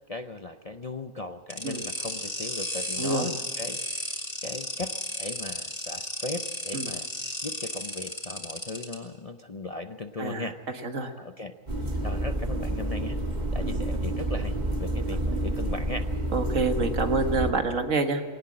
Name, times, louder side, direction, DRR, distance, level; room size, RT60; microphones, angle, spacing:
voice 1, 0.1-10.6 11.2-11.5 11.8-13.2 13.5-16.1, left 2 dB, 40° left, 8 dB, 0.6 m, -38 dB
sound 1, 1.5-8.9, left 1 dB, 20° left, 3.5 m, -34 dB
voice 2, 3.0-3.3 6.7-6.9 10.2-10.5 10.8-11.1 13.6-13.8 15.1-15.3 16.3-18.2, right 3 dB, 75° right, 6 dB, 2.0 m, -27 dB
sound 2, 11.7-17.5, right 1 dB, 35° right, 1.9 m, -29 dB
20.5 x 18.0 x 7.5 m, 1.4 s
omnidirectional pair, 1.4 m